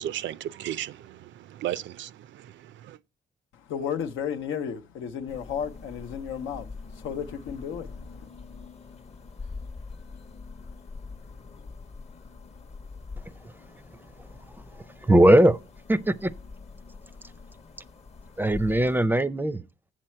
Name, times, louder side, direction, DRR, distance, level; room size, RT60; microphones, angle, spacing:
voice 1, 0.0-3.0, right 12 dB, 70° right, 0.4 m, -35 dB
voice 2, 3.5-6.7 6.9-8.1, left 8 dB, 85° left, 0.8 m, -33 dB
sound 1, 5.3-19.1, left 4 dB, 35° left, 0.8 m, -44 dB
voice 3, 15.0-15.6 15.9-16.3 18.4-19.6, right 1 dB, 10° right, 0.5 m, -19 dB
7.4 x 7.4 x 4.4 m
cardioid pair, 90°, 20 cm